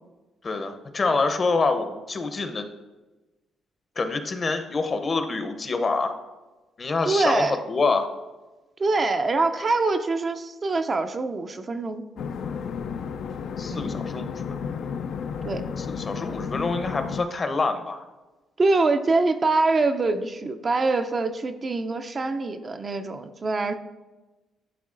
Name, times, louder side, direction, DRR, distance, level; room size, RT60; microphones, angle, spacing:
voice 1, 0.4-2.7 4.0-6.2 6.8-8.1 13.6-14.3 15.8-18.1, left 3 dB, 35° left, 8 dB, 0.7 m, -26 dB
voice 2, 7.0-7.6 8.8-12.1 13.7-13.9 15.4-15.7 18.6-23.7, right 3 dB, 35° right, 7 dB, 0.4 m, -24 dB
sound 1, 12.2-17.2, left 6 dB, 70° left, 0.3 m, -32 dB
11.0 x 3.7 x 2.5 m, 1.1 s
cardioid pair, 90°, 0 cm